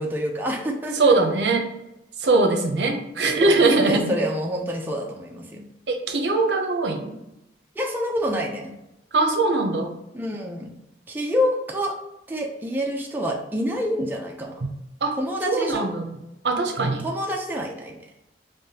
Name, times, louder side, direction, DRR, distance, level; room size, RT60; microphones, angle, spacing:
voice 1, 0.0-1.1 3.4-5.7 7.8-8.8 10.1-10.7 11.1-11.9 12.3-14.7 15.2-15.9 17.0-18.0, equal, 10° right, 0 dB, 0.4 m, -27 dB
voice 2, 0.9-1.7 2.2-4.1 5.9-7.1 9.1-10.0 14.6-14.7 15.0-15.2 15.4-16.2 16.4-17.1, right 3 dB, 75° right, 3 dB, 0.6 m, -21 dB
4.8 x 2.2 x 2.7 m, 0.91 s
head